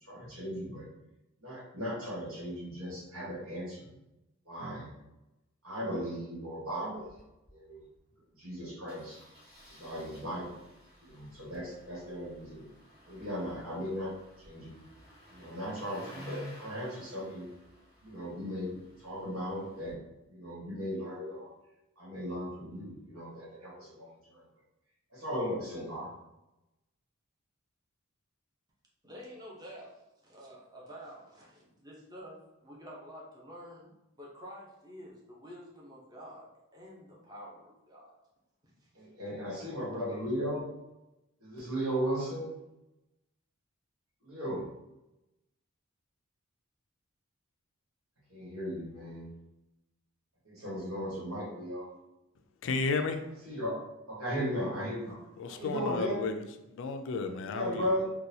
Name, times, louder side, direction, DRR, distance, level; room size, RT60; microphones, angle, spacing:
voice 1, 0.1-0.9 1.4-4.0 4.4-4.9 5.6-7.1 7.5-7.8 8.4-9.2 9.7-10.5 11.0-12.7 13.1-14.1 14.4-14.8 15.3-17.5 18.0-20.0 20.3-21.5 22.0-24.4 25.1-26.1 38.9-40.7 41.4-42.6 44.2-44.6 48.3-49.3 50.4-51.9 53.4-55.2 55.5-56.3 57.5-58.1, equal, 75° right, -5 dB, 1.4 m, -36 dB
Engine starting, 7.0-7.2 7.4-7.5 7.8-8.0 8.9-19.9, left 1 dB, 45° right, 1.5 m, -52 dB
voice 2, 29.0-38.1 38.8-39.1 40.1-40.2, equal, 20° right, -4 dB, 0.7 m, -49 dB
voice 3, 52.6-53.2 55.4-56.3 56.7-57.9, left 4 dB, 65° left, 7 dB, 0.4 m, -32 dB
3.9 x 2.2 x 2.7 m, 0.94 s
head